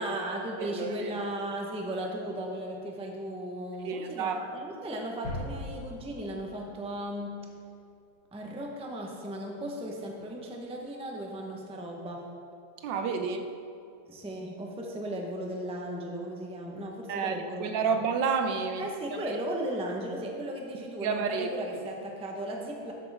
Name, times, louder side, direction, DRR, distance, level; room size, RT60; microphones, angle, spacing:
voice 1, 0.0-7.5 8.3-12.3 13.2-13.3 14.1-18.0 18.8-22.9, right 1 dB, 5° right, 0 dB, 0.6 m, -36 dB
voice 2, 0.6-1.3 3.8-4.4 12.8-13.4 17.1-18.8 19.1-19.2 21.0-21.5, right 5 dB, 75° right, 7 dB, 1.3 m, -30 dB
sound 1, 5.2-7.2 7.6-7.7, left 1 dB, 70° left, 3.5 m, -40 dB
12.0 x 8.9 x 3.5 m, 2.6 s
omnidirectional pair, 2.0 m